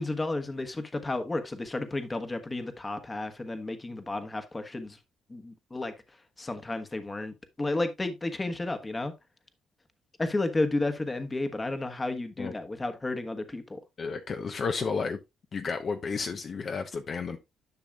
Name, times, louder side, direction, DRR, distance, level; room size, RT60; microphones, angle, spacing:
voice 1, 0.0-5.0 5.3-5.9 6.4-9.1 10.2-13.8, left 2 dB, 20° left, 1.3 m, -32 dB
voice 2, 14.0-15.2 15.5-17.4, left 5 dB, 50° left, 0.9 m, -32 dB
10.5 x 6.2 x 2.4 m
cardioid pair, 90°, 0 cm